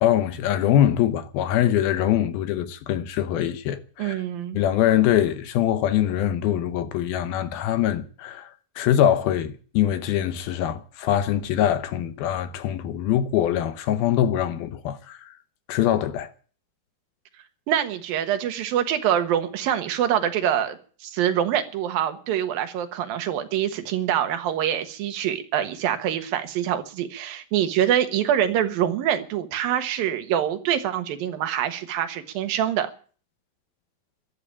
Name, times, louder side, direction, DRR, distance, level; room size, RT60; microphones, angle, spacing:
voice 1, 0.0-4.2 4.5-15.4 15.7-16.3, left 11 dB, 75° left, 2.6 m, -23 dB
voice 2, 4.0-4.6 17.7-32.9, right 10 dB, 65° right, 2.9 m, -25 dB
14.0 x 12.0 x 8.6 m
omnidirectional pair, 4.8 m